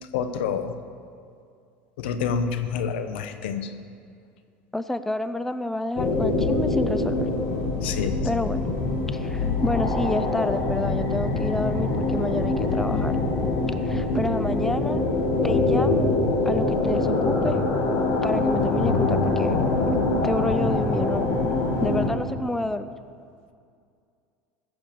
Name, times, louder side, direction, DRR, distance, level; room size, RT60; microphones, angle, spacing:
voice 1, 0.1-0.7 2.0-3.7 7.8-8.2, left 6 dB, 80° left, 9 dB, 0.9 m, -28 dB
voice 2, 4.7-7.3 7.8-8.6 9.1-13.2 13.7-15.0 15.4-16.1 16.4-17.6 18.2-19.6 20.2-21.3 21.8-22.9, left 2 dB, 5° left, 12 dB, 0.5 m, -29 dB
sound 1, 6.0-22.1, left 2 dB, 55° left, 2.3 m, -24 dB
15.5 x 6.9 x 6.7 m, 2.3 s
supercardioid pair, 100°, 6 cm